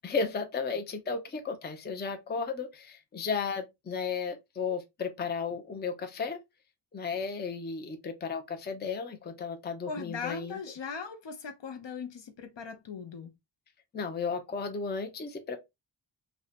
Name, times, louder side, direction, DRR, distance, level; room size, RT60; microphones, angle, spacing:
voice 1, 0.0-6.4 6.9-10.6 13.9-15.6, left 5 dB, 25° left, 0.4 m, -34 dB
voice 2, 9.9-13.3, left 5 dB, 65° left, 0.6 m, -39 dB
2.6 x 2.1 x 2.4 m
wide cardioid pair, 80°, 47 cm